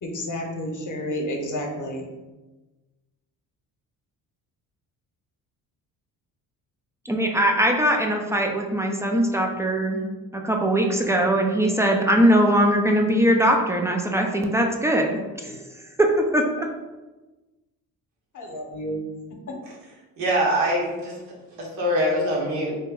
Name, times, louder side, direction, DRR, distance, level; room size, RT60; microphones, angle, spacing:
voice 1, 0.0-2.1 18.3-19.0, equal, 40° left, 1 dB, 0.9 m, -30 dB
voice 2, 7.1-10.0 10.3-15.6 16.0-16.7, right 1 dB, 5° right, 1 dB, 0.3 m, -21 dB
voice 3, 20.2-21.2 21.6-22.7, equal, 70° right, -3 dB, 1.2 m, -23 dB
2.9 x 2.2 x 3.5 m, 1.2 s
hypercardioid pair, 50°, 46 cm